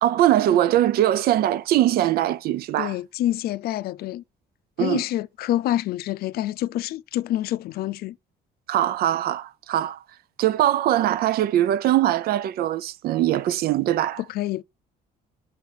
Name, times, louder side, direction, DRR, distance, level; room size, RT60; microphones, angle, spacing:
voice 1, 0.0-3.0 4.8-5.0 8.7-10.0 10.4-14.2, right 12 dB, 65° right, 0.6 m, -21 dB
voice 2, 2.8-4.2 4.8-8.2 14.3-14.6, left 13 dB, 65° left, 0.5 m, -27 dB
6.5 x 5.6 x 4.1 m
cardioid pair, 110°, 17 cm